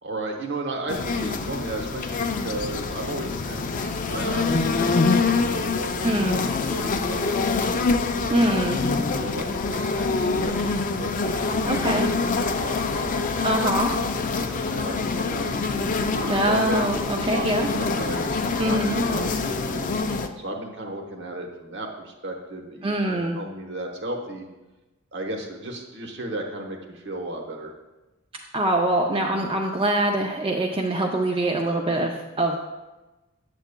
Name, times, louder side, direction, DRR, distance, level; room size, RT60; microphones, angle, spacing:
voice 1, 0.0-7.9 9.1-12.1 12.4-13.7 14.4-17.4 17.7-20.0 20.4-24.5 25.1-27.7 29.3-29.5, right 1 dB, 60° right, 1 dB, 1.0 m, -35 dB
sound 1, 0.9-20.3, left 4 dB, 40° left, 0.4 m, -25 dB
voice 2, 6.0-6.4 8.3-8.8 11.7-12.1 13.4-13.9 16.3-17.7 18.6-19.0 22.8-23.4 28.5-32.6, right 1 dB, 25° right, 1 dB, 0.4 m, -23 dB
8.1 x 7.7 x 2.2 m, 1.1 s
head